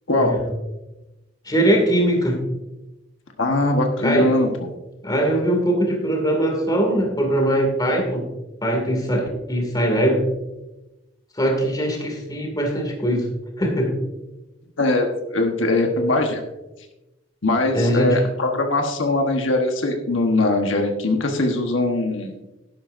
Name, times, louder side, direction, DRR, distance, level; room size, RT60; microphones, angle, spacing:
voice 1, 1.5-2.4 4.0-4.3 5.0-8.2 8.6-10.3 11.4-13.3 13.6-13.9 17.7-18.2, right 1 dB, 20° left, 2 dB, 2.3 m, -21 dB
voice 2, 3.4-4.7 14.8-16.4 17.4-22.3, left 2 dB, 85° left, 3 dB, 1.2 m, -21 dB
12.0 x 11.0 x 2.6 m, 1.0 s
head